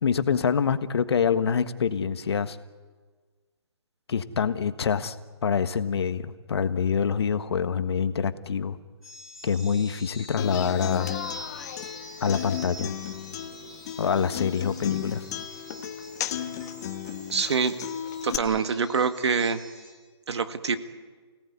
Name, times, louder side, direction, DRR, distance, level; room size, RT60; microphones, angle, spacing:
voice 1, 0.0-2.6 4.1-5.1 5.4-8.8 9.4-11.1 12.2-12.9 14.0-15.2, left 7 dB, 65° left, 11 dB, 1.5 m, -25 dB
sound 1, 9.0-19.9, left 1 dB, 5° right, 6.0 m, -46 dB
Human voice / Acoustic guitar, 10.4-18.4, left 10 dB, 35° left, 1.3 m, -34 dB
voice 2, 17.3-17.8 18.2-19.6 20.3-20.8, right 5 dB, 70° right, 9 dB, 1.9 m, -25 dB
29.0 x 18.0 x 9.6 m, 1.4 s
hypercardioid pair, 160°, 15 cm